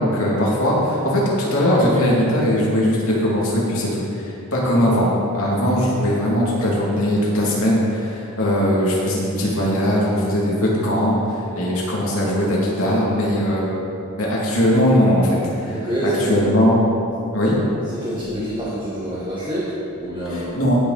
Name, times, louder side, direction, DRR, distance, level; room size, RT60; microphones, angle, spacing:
voice 1, 0.0-13.6 14.2-16.8 17.3-17.6 20.3-20.8, equal, 70° left, -5 dB, 2.8 m, -20 dB
voice 2, 15.7-16.5 17.9-20.6, right 1 dB, 20° right, -9 dB, 1.8 m, -26 dB
16.5 x 6.7 x 4.3 m, 2.8 s
head